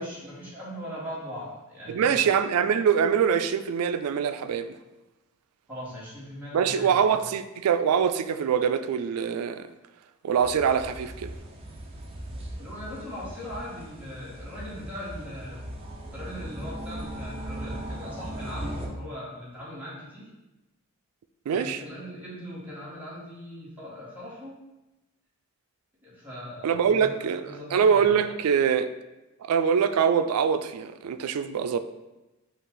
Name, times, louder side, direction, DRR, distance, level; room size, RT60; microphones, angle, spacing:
voice 1, 0.0-2.3 5.7-7.2 12.6-15.6 16.1-20.3 21.5-24.6 26.0-27.2 27.4-28.1, equal, 10° right, 1.5 m, -40 dB
voice 2, 1.9-4.8 6.5-9.7 10.2-11.3 21.5-21.8 26.6-28.9 29.4-31.8, right 7 dB, 85° right, 0.3 m, -24 dB
sound 1, 10.4-18.9, right 1 dB, 25° right, 0.6 m, -38 dB
5.6 x 2.4 x 3.8 m
head